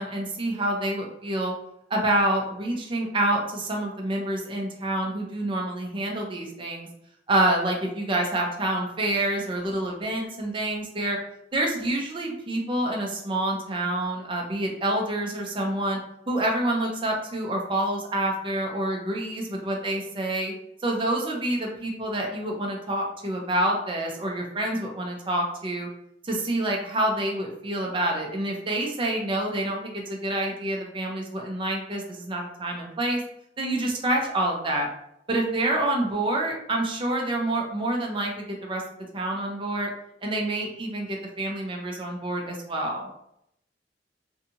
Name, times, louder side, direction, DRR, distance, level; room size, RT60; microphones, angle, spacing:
voice 1, 0.0-1.5 1.9-6.9 7.3-11.2 11.5-16.0 16.3-20.5 20.8-25.9 26.2-33.2 33.6-34.9 35.3-38.8 39.1-39.9 40.2-43.1, right 1 dB, 30° right, 0 dB, 0.6 m, -27 dB
2.7 x 2.4 x 2.7 m, 0.76 s
head